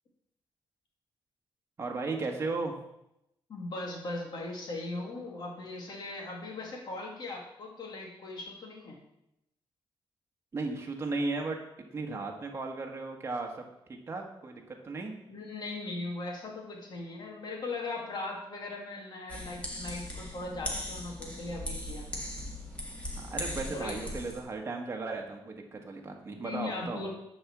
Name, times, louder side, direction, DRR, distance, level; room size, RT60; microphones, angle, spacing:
voice 1, 1.8-2.7 10.5-11.6 11.9-13.5 14.1-15.1 23.2-27.0, right 3 dB, 30° right, 1 dB, 1.3 m, -35 dB
voice 2, 3.5-9.0 15.3-22.1 23.7-24.0 26.4-27.1, left 2 dB, 50° left, -1 dB, 2.4 m, -39 dB
sound 1, 19.3-24.4, left 1 dB, 15° left, 1.8 m, -39 dB
9.6 x 4.4 x 7.2 m, 0.83 s
wide cardioid pair, 165°, 9 cm